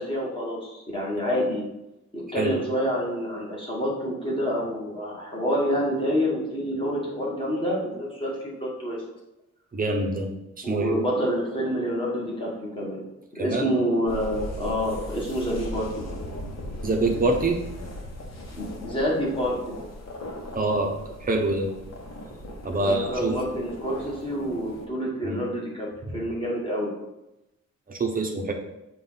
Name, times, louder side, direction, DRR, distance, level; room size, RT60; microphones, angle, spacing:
voice 1, 0.0-1.7 2.1-9.0 10.6-13.0 13.3-15.9 18.6-19.8 22.7-26.9, equal, 15° left, -5 dB, 1.5 m, -28 dB
voice 2, 9.7-10.3 10.6-11.0 13.4-13.8 16.8-17.6 20.5-21.7 22.6-23.4 25.2-25.4 26.1-26.2 27.9-28.5, right 2 dB, 30° right, 1 dB, 0.8 m, -25 dB
sound 1, 14.1-24.9, left 1 dB, 55° left, 1.1 m, -38 dB
7.0 x 2.6 x 5.6 m, 0.92 s
wide cardioid pair, 170°, 31 cm